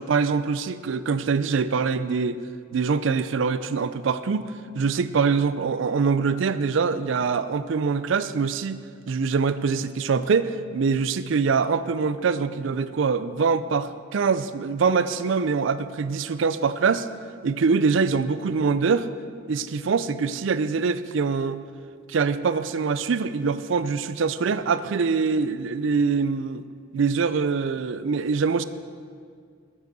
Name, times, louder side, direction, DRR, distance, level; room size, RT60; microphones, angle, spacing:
voice 1, 0.0-2.4 2.7-8.8 9.1-17.1 17.4-19.1 19.5-21.6 22.1-26.6 26.9-28.6, right 5 dB, 65° right, 13 dB, 0.4 m, -24 dB
9.3 x 7.5 x 6.2 m, 2.1 s
head